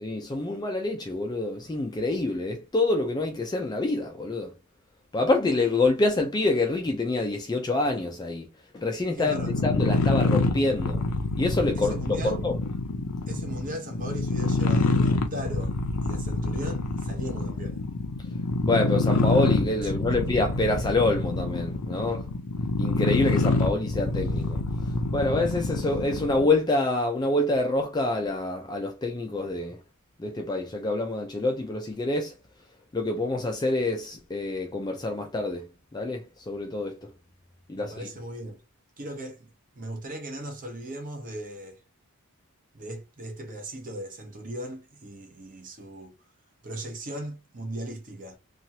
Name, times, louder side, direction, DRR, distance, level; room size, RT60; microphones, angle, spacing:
voice 1, 0.0-4.5 5.1-8.5 8.7-11.0 11.4-12.5 18.6-22.2 22.8-24.6 25.1-29.8 30.2-32.3 32.9-35.7 35.9-37.0 37.7-37.9, left 2 dB, 20° left, 0.3 m, -26 dB
voice 2, 9.1-9.6 11.7-12.4 13.3-15.7 16.0-17.8 19.8-20.2 37.7-38.6 39.0-39.5 39.7-41.8 42.7-46.1 46.6-48.4, right 1 dB, 40° right, 0.8 m, -38 dB
sound 1, 9.2-26.5, left 3 dB, 85° left, 0.5 m, -26 dB
2.8 x 2.4 x 2.7 m
head